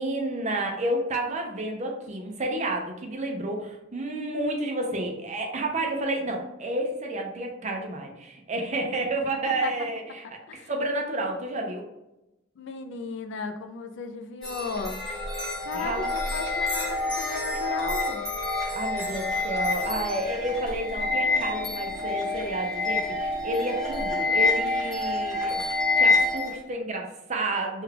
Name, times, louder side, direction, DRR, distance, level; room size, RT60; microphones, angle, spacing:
voice 1, 0.0-10.4 10.7-11.9 15.7-16.1 18.7-25.6 26.0-27.8, right 2 dB, 35° right, 2 dB, 0.6 m, -30 dB
voice 2, 12.6-15.0 15.6-18.2, left 5 dB, 65° left, 7 dB, 0.4 m, -35 dB
sound 1, 14.4-26.5, left 3 dB, 5° left, 0.9 m, -27 dB
3.4 x 2.3 x 3.2 m, 0.92 s
head